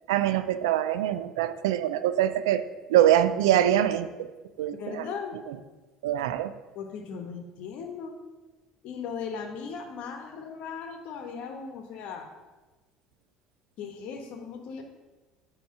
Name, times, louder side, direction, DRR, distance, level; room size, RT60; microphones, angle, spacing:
voice 1, 0.1-2.6 2.9-4.3 4.6-5.1 5.5-5.6 6.0-6.5, right 11 dB, 80° right, 12 dB, 0.4 m, -24 dB
voice 2, 4.7-5.4 6.7-8.1 8.8-12.3 13.8-14.8, left 6 dB, 65° left, 5 dB, 1.0 m, -38 dB
8.4 x 3.1 x 5.4 m, 1.2 s
hypercardioid pair, 65°, 2 cm